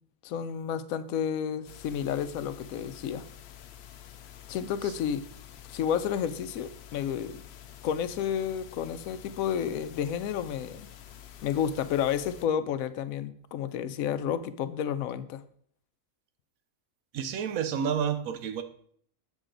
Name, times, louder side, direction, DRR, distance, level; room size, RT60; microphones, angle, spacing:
voice 1, 0.2-3.2 4.5-5.2 5.7-7.4 7.8-10.9 11.4-15.4, left 8 dB, 80° left, 13 dB, 1.0 m, -31 dB
sound 1, 1.7-12.5, left 10 dB, 60° left, 0.7 m, -49 dB
voice 2, 17.1-18.6, right 7 dB, 80° right, 10 dB, 1.1 m, -30 dB
8.0 x 6.3 x 3.8 m, 0.62 s
omnidirectional pair, 1.4 m